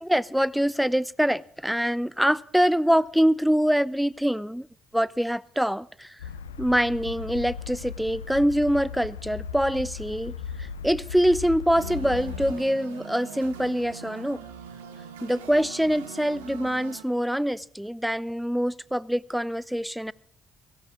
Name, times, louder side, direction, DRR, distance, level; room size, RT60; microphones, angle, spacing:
voice 1, 0.0-4.7 4.9-6.2 6.6-14.4 15.2-20.1, equal, ahead, 0.5 m, -24 dB
sound 1, 6.2-12.5, left 7 dB, 80° left, 0.5 m, -37 dB
sound 2, 11.7-17.0, right 8 dB, 75° right, 1.2 m, -42 dB
17.5 x 16.0 x 3.6 m
figure-of-eight pair, 45°, 0 cm